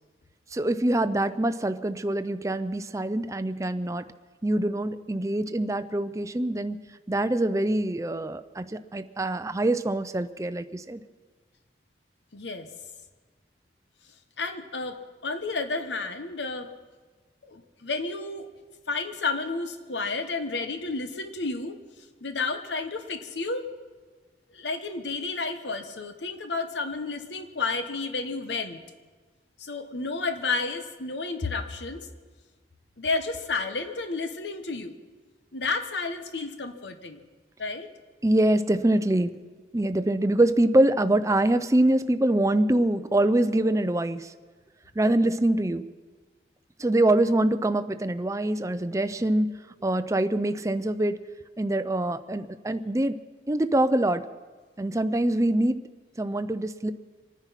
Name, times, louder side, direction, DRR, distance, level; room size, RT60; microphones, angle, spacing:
voice 1, 0.5-4.0 4.4-6.8 7.1-11.0 38.2-39.4 39.7-44.3 45.0-45.9 46.8-49.5 49.8-51.2 51.6-53.2 53.5-54.3 54.8-55.8 56.2-56.9, right 1 dB, 20° right, 10 dB, 0.5 m, -24 dB
voice 2, 12.3-12.7 14.4-16.7 17.5-18.5 18.9-21.8 22.2-23.7 24.5-28.8 29.6-32.1 33.0-35.0 35.5-37.2 37.6-37.9, left 3 dB, 85° left, 8 dB, 1.2 m, -31 dB
25.5 x 9.8 x 5.8 m, 1.4 s
head